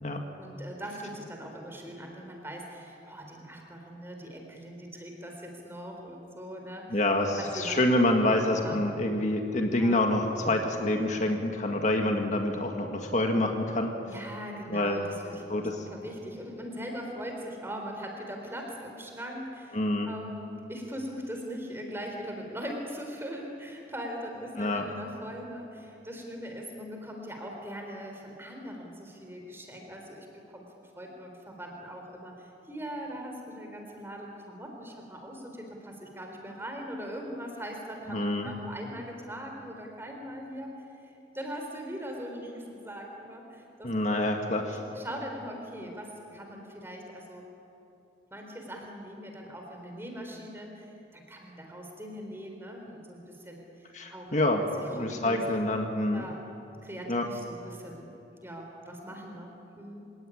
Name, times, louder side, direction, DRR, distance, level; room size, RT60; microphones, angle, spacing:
voice 1, 0.4-7.0 7.3-7.8 8.2-8.8 9.8-10.0 14.1-19.8 20.1-30.7 31.0-38.2 38.4-44.2 44.7-47.4 48.3-55.4 56.1-56.4 56.8-60.0, equal, 15° right, 2 dB, 3.9 m, -41 dB
voice 2, 6.9-13.9 14.7-15.0 15.5-15.9 19.7-20.1 24.6-24.9 38.1-38.5 43.8-44.8 53.9-54.6 54.9-56.3 57.1-57.3, left 1 dB, 40° left, 3 dB, 1.8 m, -27 dB
27.0 x 17.0 x 10.0 m, 2.9 s
head